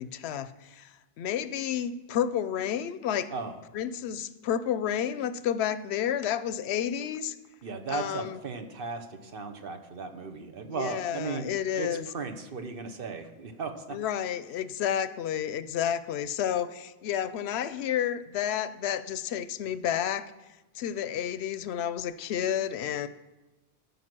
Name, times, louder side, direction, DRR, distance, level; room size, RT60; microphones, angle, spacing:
voice 1, 0.0-3.3 3.7-7.4 7.9-8.4 10.7-12.1 13.9-20.3 20.7-23.1, left 9 dB, 85° left, 14 dB, 0.8 m, -31 dB
voice 2, 7.6-14.0, right 4 dB, 60° right, 7 dB, 1.1 m, -36 dB
14.5 x 5.4 x 6.1 m, 1.1 s
omnidirectional pair, 1.1 m